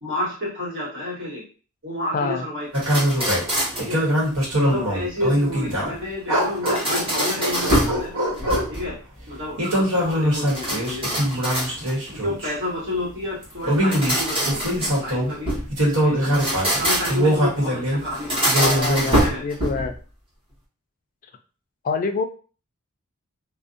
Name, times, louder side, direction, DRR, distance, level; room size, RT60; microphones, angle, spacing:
voice 1, 0.0-1.4 1.8-2.8 3.8-4.0 4.6-8.1 8.7-9.0 9.3-11.5 12.2-15.5 16.0-18.5 19.2-19.4, left 1 dB, 60° right, -6 dB, 1.3 m, -30 dB
voice 2, 2.1-2.5 4.6-4.8 18.6-19.9 21.8-22.3, left 4 dB, 40° left, 7 dB, 0.3 m, -26 dB
sound 1, 2.7-4.0 6.4-8.0 8.4-9.0 10.5-12.1 13.7-15.7 16.2-17.3 18.1-20.0, equal, 25° right, 1.1 m, -25 dB
sound 2, 2.7-6.0 6.3-8.8 9.6-12.5 13.4-15.4 15.7-18.0 18.5-19.2, equal, 90° right, 1.1 m, -23 dB
2.5 x 2.1 x 2.5 m, 0.37 s
head